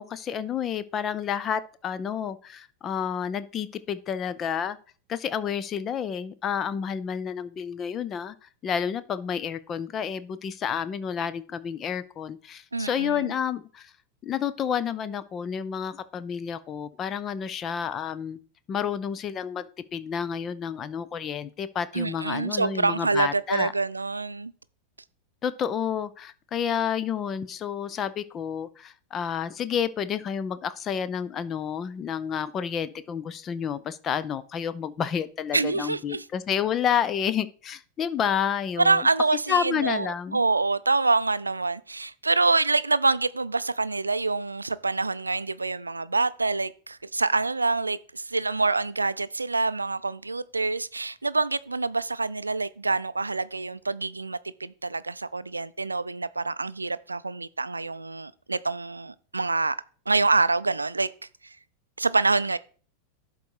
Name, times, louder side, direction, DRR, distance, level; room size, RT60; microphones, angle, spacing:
voice 1, 0.0-4.8 5.1-13.9 14.2-18.4 18.7-19.7 19.9-23.7 25.4-39.1 39.5-40.4, left 8 dB, 25° left, 0.5 m, -30 dB
voice 2, 12.7-13.3 21.9-24.5 35.5-36.2 38.8-59.8 60.1-61.1 62.0-62.6, right 3 dB, 80° right, 0.4 m, -26 dB
11.5 x 4.0 x 4.7 m
figure-of-eight pair, 90°, 0 cm